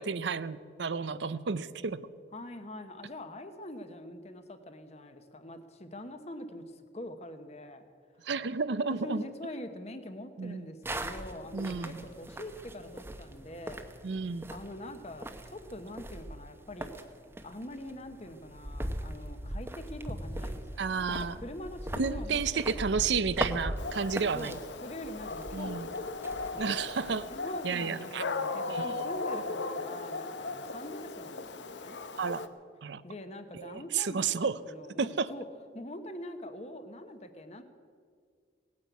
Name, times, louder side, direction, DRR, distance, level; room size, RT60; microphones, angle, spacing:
voice 1, 0.0-2.0 8.2-9.2 10.4-10.7 11.5-12.1 14.0-14.5 20.8-21.4 22.0-24.6 25.5-25.9 26.6-27.3 27.6-28.2 28.7-29.0 32.2-32.5 32.8-33.0 33.5-34.6 35.0-35.3, right 5 dB, 70° right, 15 dB, 0.5 m, -32 dB
voice 2, 2.3-7.8 8.2-8.3 8.9-13.9 14.5-17.0 17.4-22.4 22.7-22.8 24.3-26.1 27.3-32.0 33.0-35.5 35.7-37.6, left 1 dB, 35° left, 8 dB, 1.1 m, -44 dB
sound 1, 10.8-27.4, right 1 dB, 15° right, 0.8 m, -40 dB
Dog, 23.8-32.5, left 3 dB, 75° left, 0.8 m, -37 dB
18.0 x 9.7 x 8.2 m, 2.1 s
head